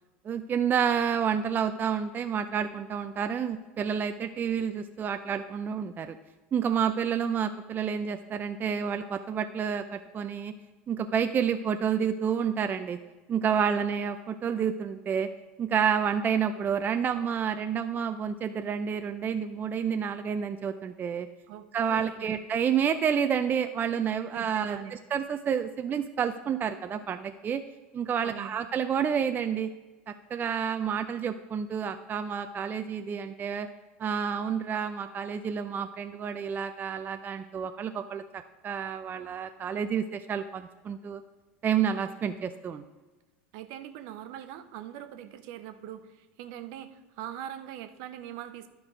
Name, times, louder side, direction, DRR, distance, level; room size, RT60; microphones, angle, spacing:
voice 1, 0.2-6.2 6.5-10.5 10.9-13.0 13.3-15.3 15.6-21.3 21.7-27.6 27.9-29.7 30.1-33.7 34.0-38.2 38.6-41.2 41.6-42.8, right 7 dB, 30° right, 8 dB, 0.4 m, -29 dB
voice 2, 21.5-22.4 24.3-24.9 28.2-28.5 43.5-48.7, right 11 dB, 60° right, 10 dB, 0.8 m, -42 dB
11.5 x 4.6 x 4.9 m, 1.2 s
hypercardioid pair, 90°, 7 cm